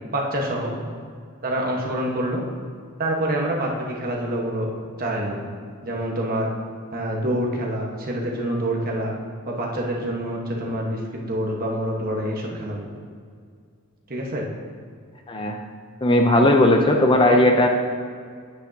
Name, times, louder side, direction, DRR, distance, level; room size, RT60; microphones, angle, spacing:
voice 1, 0.1-0.7 1.4-2.4 3.0-4.7 5.0-5.4 5.8-6.5 6.9-9.1 9.5-12.9 14.1-14.5, right 1 dB, 45° right, -1 dB, 1.3 m, -26 dB
voice 2, 15.3-15.6 16.0-17.7, left 1 dB, 25° left, 3 dB, 0.5 m, -17 dB
9.5 x 8.8 x 2.8 m, 2.1 s
head